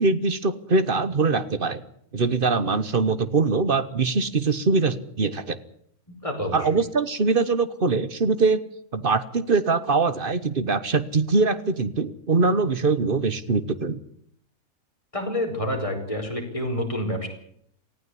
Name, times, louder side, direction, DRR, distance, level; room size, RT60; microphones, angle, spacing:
voice 1, 0.0-1.8 2.1-5.6 6.5-8.6 8.9-14.0, right 4 dB, 40° right, 13 dB, 1.2 m, -22 dB
voice 2, 6.1-6.7 15.1-17.3, left 1 dB, 20° left, 3 dB, 5.0 m, -28 dB
19.0 x 15.0 x 9.8 m, 0.67 s
omnidirectional pair, 1.6 m